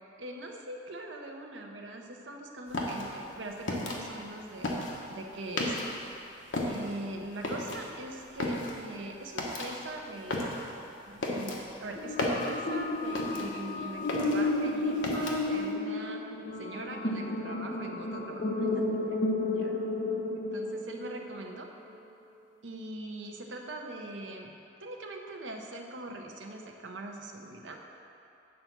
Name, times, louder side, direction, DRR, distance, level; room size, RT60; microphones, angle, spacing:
voice 1, 0.2-4.8 5.1-5.8 6.7-10.5 11.1-16.2 16.6-19.7 20.3-21.7 22.6-27.8, right 1 dB, 70° right, 2 dB, 0.7 m, -42 dB
sound 1, 2.7-6.1 6.4-13.7 14.0-15.6, left 1 dB, 80° left, 1.0 m, -34 dB
sound 2, 11.9-21.3, left 2 dB, 50° left, 0.8 m, -32 dB
8.5 x 4.0 x 5.8 m, 2.7 s
head